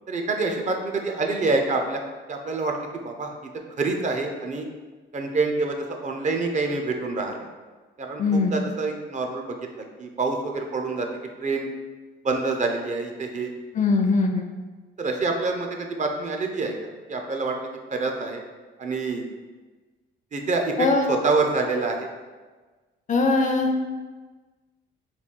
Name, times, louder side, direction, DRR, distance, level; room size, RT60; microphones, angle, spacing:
voice 1, 0.1-2.0 2.3-3.5 3.8-4.7 5.1-7.5 8.0-11.1 11.4-11.7 12.2-13.5 15.0-18.4 18.8-19.3 20.3-22.1, right 3 dB, 40° right, 3 dB, 0.5 m, -27 dB
voice 2, 8.2-8.5 13.7-14.5 20.8-21.1 23.1-23.7, left 3 dB, 40° left, 4 dB, 0.5 m, -21 dB
3.9 x 2.3 x 3.7 m, 1.3 s
cardioid pair, 90°, 20 cm